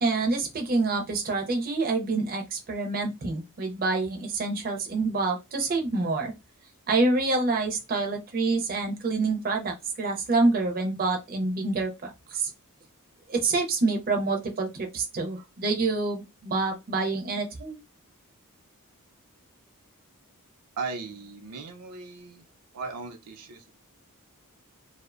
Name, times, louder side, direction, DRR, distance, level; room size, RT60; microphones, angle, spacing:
voice 1, 0.0-6.3 6.9-12.5 13.3-17.8, right 3 dB, 40° right, 0.5 m, -27 dB
voice 2, 20.8-22.4 22.7-23.7, right 4 dB, 90° right, 0.5 m, -37 dB
2.5 x 2.1 x 2.4 m
head